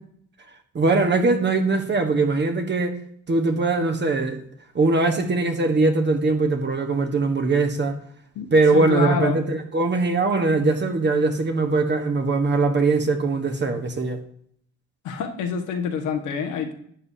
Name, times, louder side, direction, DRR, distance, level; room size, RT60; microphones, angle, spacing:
voice 1, 0.7-3.0 3.3-4.4 4.7-8.0 8.5-14.2, right 3 dB, 35° right, 6 dB, 1.4 m, -21 dB
voice 2, 8.3-9.4 15.0-16.7, left 6 dB, 90° left, 4 dB, 1.5 m, -27 dB
12.0 x 8.3 x 2.8 m, 0.67 s
cardioid pair, 90°, 30 cm